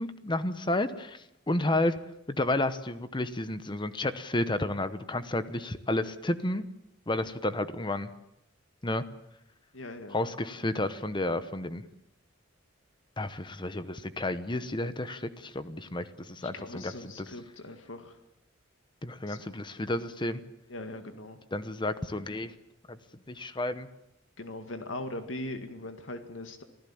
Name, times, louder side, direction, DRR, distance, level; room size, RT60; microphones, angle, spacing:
voice 1, 0.0-2.0 2.3-6.6 7.1-8.1 8.8-9.0 10.1-11.8 13.2-16.9 17.2-17.3 19.0-20.4 21.5-22.5 22.9-23.0 23.3-23.9, left 1 dB, 25° left, 12 dB, 1.0 m, -31 dB
voice 2, 9.7-10.2 16.4-18.2 19.3-19.4 20.7-21.4 24.4-26.6, left 2 dB, 90° left, 7 dB, 2.0 m, -40 dB
25.5 x 16.0 x 8.7 m, 0.85 s
head